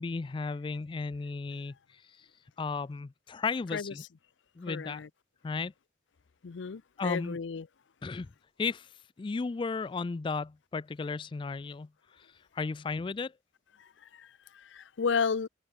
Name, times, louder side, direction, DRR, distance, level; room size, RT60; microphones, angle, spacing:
voice 1, 0.0-2.3 2.6-4.0 4.6-5.0 5.4-5.7 7.0-7.4 8.0-8.3 8.6-8.9 9.2-11.9 12.2-12.3 12.5-13.3, left 4 dB, 25° left, 0.3 m, -34 dB
voice 2, 4.7-5.1 6.4-7.7 14.1-14.3 14.5-15.5, left 5 dB, 80° left, 0.5 m, -32 dB
head